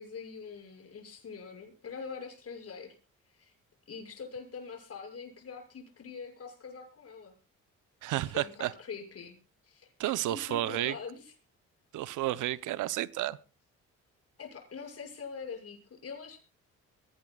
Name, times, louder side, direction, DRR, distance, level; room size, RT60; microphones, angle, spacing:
voice 1, 0.0-3.0 3.3-3.5 3.9-7.3 8.2-9.4 9.6-11.3 14.4-16.4, left 5 dB, 50° left, 6.4 m, -44 dB
voice 2, 8.0-8.7 10.0-10.9 11.9-13.4, right 15 dB, 85° right, 0.8 m, -31 dB
23.0 x 17.0 x 2.3 m
cardioid pair, 90°, 30 cm